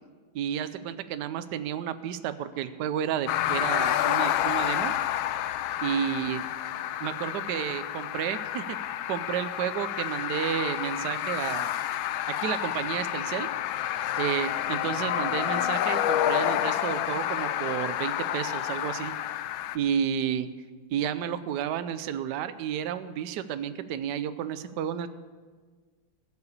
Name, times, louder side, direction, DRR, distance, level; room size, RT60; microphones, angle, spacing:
voice 1, 0.3-4.9 5.8-6.5 7.0-8.8 9.1-11.7 12.3-13.5 14.2-19.1 19.7-20.5 20.9-25.1, right 9 dB, 65° right, 11 dB, 1.1 m, -31 dB
sound 1, 3.3-19.8, left 12 dB, 80° left, 1.3 m, -29 dB
15.5 x 6.9 x 8.3 m, 1.5 s
omnidirectional pair, 2.3 m